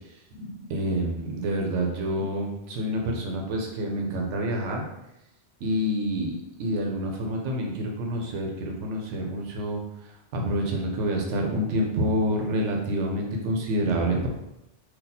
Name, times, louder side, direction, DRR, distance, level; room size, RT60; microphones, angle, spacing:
voice 1, 0.3-4.8 5.6-14.3, equal, 90° right, 0 dB, 1.0 m, -28 dB
2.7 x 2.4 x 4.0 m, 0.87 s
omnidirectional pair, 1.2 m